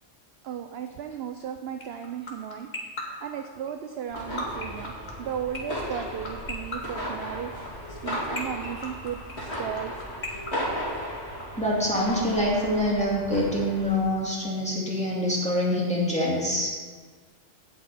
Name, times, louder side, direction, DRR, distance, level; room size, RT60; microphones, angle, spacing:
voice 1, 0.4-2.7 3.2-4.9 5.2-7.5 7.9-10.0, right 9 dB, 65° right, 6 dB, 0.7 m, -35 dB
sound 1, 1.8-11.4, left 3 dB, 35° left, 1.6 m, -34 dB
sound 2, 4.1-14.1, equal, 55° left, 2.8 m, -35 dB
voice 2, 11.6-16.7, left 1 dB, 5° left, -6 dB, 2.3 m, -25 dB
16.0 x 5.6 x 4.1 m, 1.5 s
omnidirectional pair, 1.3 m